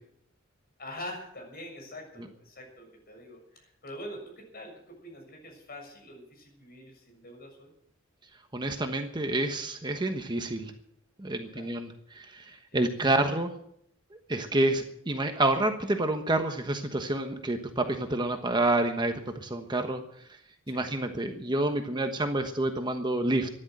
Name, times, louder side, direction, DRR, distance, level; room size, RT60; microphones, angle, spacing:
voice 1, 0.8-7.7 11.5-11.7 12.7-12.8 20.7-20.8, left 1 dB, 50° left, 2 dB, 7.0 m, -44 dB
voice 2, 8.5-10.7 11.2-13.5 14.1-20.0 20.7-23.5, right 2 dB, 20° right, 5 dB, 1.2 m, -28 dB
14.0 x 11.0 x 7.8 m, 0.71 s
head